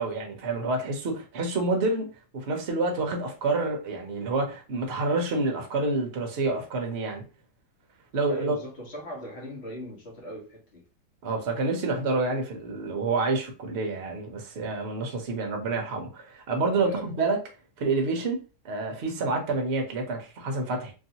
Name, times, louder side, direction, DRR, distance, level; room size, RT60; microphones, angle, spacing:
voice 1, 0.0-7.2 8.1-8.6 11.2-17.4 17.8-18.4 18.6-20.9, right 3 dB, 50° right, 0.8 m, -28 dB
voice 2, 8.3-10.8 16.6-17.1, right 1 dB, 45° left, 1.2 m, -39 dB
3.0 x 2.6 x 2.7 m
omnidirectional pair, 1.8 m